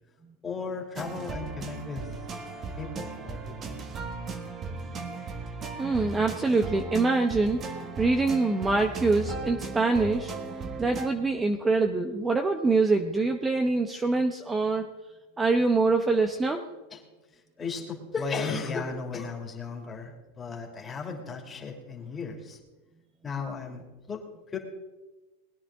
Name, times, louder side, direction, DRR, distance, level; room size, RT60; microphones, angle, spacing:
voice 1, 0.4-2.1 2.8-3.8 16.9-17.0 17.3-22.6 23.2-24.6, left 4 dB, 20° left, 1 dB, 2.7 m, -35 dB
sound 1, 1.0-11.1, right 4 dB, 30° right, 1.6 m, -37 dB
voice 2, 5.8-7.6 8.0-10.3 10.8-14.9 15.4-16.6, right 3 dB, 15° right, 5 dB, 0.9 m, -24 dB
20.5 x 10.0 x 3.7 m, 1.2 s
hypercardioid pair, 105°, 0 cm